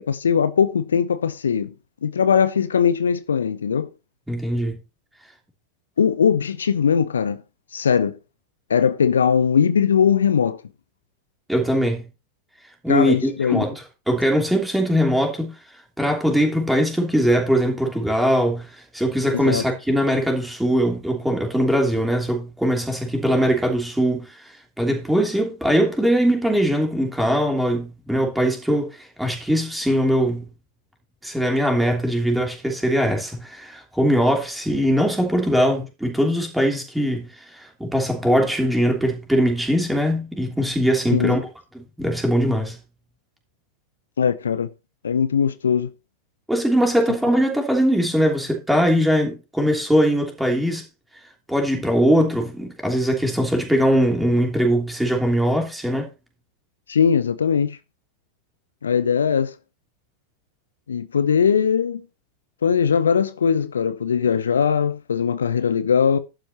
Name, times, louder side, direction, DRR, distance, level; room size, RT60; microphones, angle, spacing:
voice 1, 0.0-1.7 2.0-3.9 6.0-7.4 7.7-8.2 8.7-10.6 12.9-13.6 19.4-19.6 41.1-41.4 44.2-44.7 45.0-45.9 56.9-57.8 58.8-59.5 60.9-62.0 62.6-66.2, left 7 dB, 70° left, 0.7 m, -20 dB
voice 2, 4.3-4.8 11.5-12.1 12.8-13.7 14.1-15.5 16.0-24.5 24.8-30.5 31.2-41.4 41.7-42.8 46.5-50.8 51.5-56.1, equal, 5° right, 3.0 m, -21 dB
11.5 x 9.0 x 2.9 m
figure-of-eight pair, 90°, 0 cm